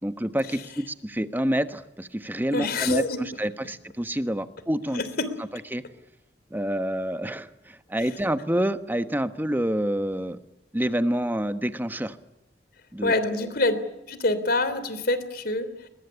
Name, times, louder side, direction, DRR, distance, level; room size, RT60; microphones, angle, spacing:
voice 1, 0.0-5.0 5.5-5.8 6.5-10.4 10.7-12.2 12.9-13.5, right 1 dB, 10° right, 10 dB, 1.3 m, -28 dB
voice 2, 2.5-3.2 4.9-5.3 13.0-13.8 14.1-15.9, left 2 dB, 60° left, 13 dB, 3.2 m, -26 dB
23.0 x 21.5 x 9.9 m, 0.90 s
head